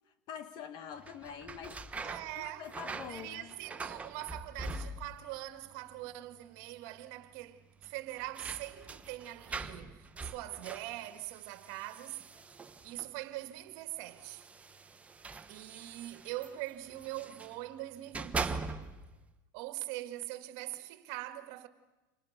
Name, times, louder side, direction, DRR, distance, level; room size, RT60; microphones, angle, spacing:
voice 1, 0.3-3.5, left 8 dB, 40° left, 1.7 m, -46 dB
sound 1, 1.0-5.4 5.6-6.3 6.6-6.7 7.8-13.2 14.1-17.6 18.0-19.2, right 3 dB, 10° right, 1.1 m, -43 dB
voice 2, 2.0-2.7 3.1-12.2 12.8-14.4 15.5-18.6 19.5-21.7, right 16 dB, 55° right, 2.1 m, -42 dB
30.0 x 26.5 x 6.8 m
supercardioid pair, 145°, 11 cm